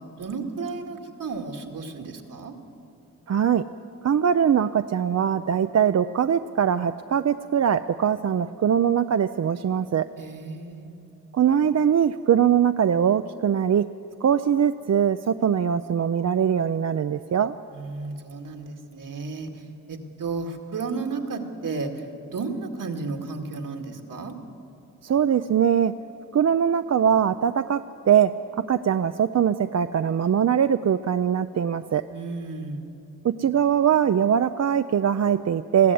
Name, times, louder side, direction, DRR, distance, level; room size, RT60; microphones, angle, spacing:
voice 1, 0.2-2.5 10.2-11.0 17.7-19.5 19.9-21.9 22.3-24.3 32.1-32.9, right 4 dB, 75° right, 4 dB, 2.2 m, -33 dB
voice 2, 3.3-3.6 4.0-10.1 11.3-13.8 14.2-17.5 25.0-25.9 26.3-28.3 28.7-32.0 33.2-35.9, right 8 dB, 55° right, 10 dB, 0.5 m, -22 dB
21.0 x 15.5 x 9.4 m, 2.9 s
wide cardioid pair, 95°, 32 cm